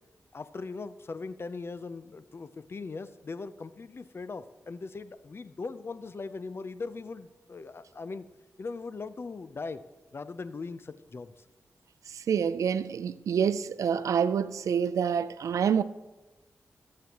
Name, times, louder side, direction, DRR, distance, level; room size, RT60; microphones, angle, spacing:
voice 1, 0.3-8.3 8.6-9.8 10.1-11.3, left 4 dB, 50° left, 0.6 m, -39 dB
voice 2, 12.1-15.8, right 7 dB, 85° right, 0.4 m, -27 dB
16.5 x 7.6 x 3.0 m
cardioid pair, 55°, 5 cm